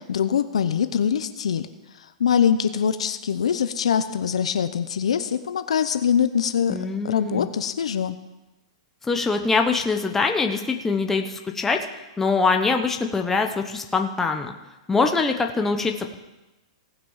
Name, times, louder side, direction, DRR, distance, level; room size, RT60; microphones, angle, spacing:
voice 1, 0.1-1.7 2.2-6.8 7.0-8.2, left 8 dB, 85° left, 11 dB, 0.8 m, -23 dB
voice 2, 6.7-7.5 9.0-11.8 12.2-14.5 14.9-16.2, left 4 dB, 10° left, 4 dB, 1.0 m, -23 dB
18.0 x 6.1 x 5.7 m, 1.0 s
hypercardioid pair, 135°, 3 cm